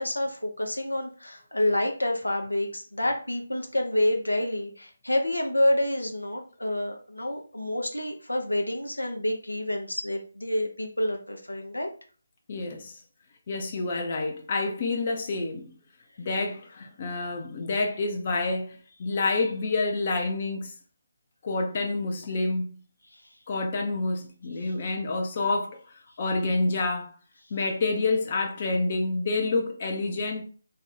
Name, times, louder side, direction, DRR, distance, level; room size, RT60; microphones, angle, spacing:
voice 1, 0.0-11.9, left 1 dB, 90° left, 0.7 m, -28 dB
voice 2, 12.5-13.0 13.5-15.7 16.2-20.7 21.4-22.8 23.5-25.8 26.2-27.1 27.5-30.4, left 3 dB, 40° left, 0.6 m, -28 dB
2.6 x 2.2 x 4.0 m
figure-of-eight pair, 150°, 0 cm